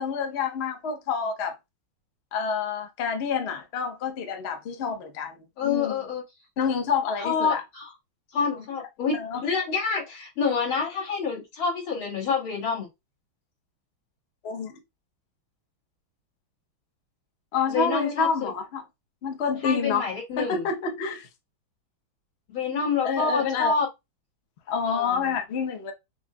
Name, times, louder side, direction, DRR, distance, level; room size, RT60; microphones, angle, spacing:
voice 1, 0.0-1.5 2.3-5.9 6.6-7.6 9.1-9.4 14.4-14.8 17.5-18.8 19.2-20.1 20.4-21.3 23.0-23.7 24.7-25.9, left 5 dB, 55° left, 0.7 m, -28 dB
voice 2, 5.6-6.2 7.2-7.9 8.3-12.9 17.7-18.5 19.6-20.7 22.5-23.9 24.9-25.3, left 5 dB, 90° left, 3.0 m, -27 dB
6.0 x 2.6 x 2.2 m
omnidirectional pair, 2.2 m